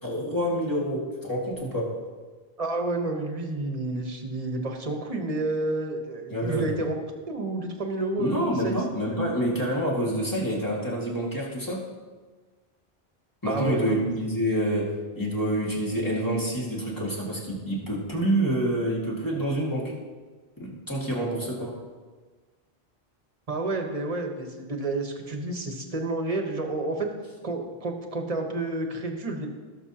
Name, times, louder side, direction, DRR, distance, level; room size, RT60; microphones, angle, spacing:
voice 1, 0.0-2.0 6.3-6.7 8.2-11.9 13.4-19.9 20.6-21.8, right 1 dB, 20° left, -4 dB, 2.1 m, -27 dB
voice 2, 2.6-6.9 7.3-8.8 13.5-14.0 23.5-27.1 27.4-29.5, right 2 dB, 35° right, 3 dB, 1.2 m, -30 dB
17.5 x 6.6 x 2.9 m, 1.4 s
omnidirectional pair, 1.0 m